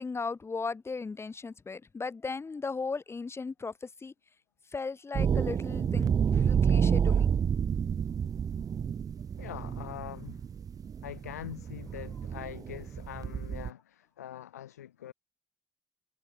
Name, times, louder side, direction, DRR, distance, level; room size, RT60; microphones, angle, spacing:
voice 1, 0.0-4.1 4.7-7.3, left 4 dB, 30° left, 5.6 m, -37 dB
sound 1, 5.1-13.7, right 7 dB, 45° right, 2.1 m, -29 dB
voice 2, 9.4-10.5 11.0-15.1, left 11 dB, 80° left, 6.5 m, -43 dB
figure-of-eight pair, 45°, 8 cm